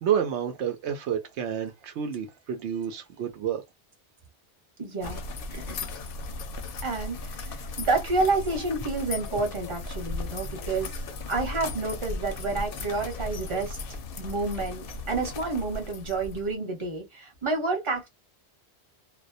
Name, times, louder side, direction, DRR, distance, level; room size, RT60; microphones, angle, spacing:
voice 1, 0.0-3.6, right 8 dB, 80° right, 0.9 m, -29 dB
voice 2, 4.8-5.2 5.5-5.9 6.8-10.9 11.3-13.8 14.2-18.1, right 3 dB, 30° right, 0.9 m, -29 dB
sound 1, 5.0-16.5, left 3 dB, 60° left, 0.7 m, -36 dB
2.3 x 2.1 x 2.5 m
omnidirectional pair, 1.2 m